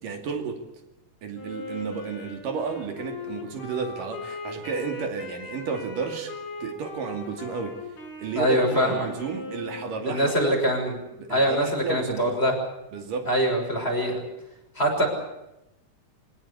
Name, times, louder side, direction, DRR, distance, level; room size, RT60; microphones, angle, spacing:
voice 1, 0.0-0.6 1.2-6.4 6.6-7.8 8.2-10.6 11.2-12.4 12.9-13.3, right 5 dB, 75° right, 4 dB, 4.1 m, -32 dB
Wind instrument woodwind instrument, 1.3-10.2, left 2 dB, 60° left, 7.2 m, -39 dB
voice 2, 8.3-9.1 10.0-10.9 11.3-12.5 13.3-14.2 14.7-15.1, equal, 15° left, 2 dB, 6.3 m, -23 dB
26.5 x 17.5 x 8.4 m, 0.90 s
omnidirectional pair, 3.9 m